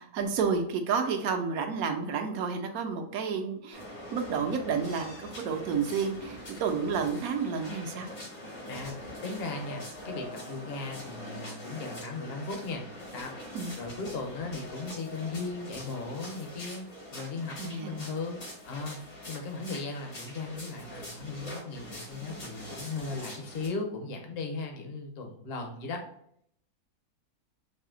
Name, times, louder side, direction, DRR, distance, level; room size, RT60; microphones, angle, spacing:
voice 1, 0.0-3.8 4.1-8.1 13.5-13.7 17.6-18.0, right 5 dB, 70° right, 5 dB, 1.1 m, -30 dB
sound 1, 3.7-23.7, left 1 dB, 80° left, 2.6 m, -44 dB
voice 2, 8.7-13.3 13.8-16.9 17.1-18.4 18.6-26.0, left 3 dB, 45° left, 3 dB, 0.9 m, -37 dB
5.0 x 2.7 x 3.8 m, 0.68 s
omnidirectional pair, 1.7 m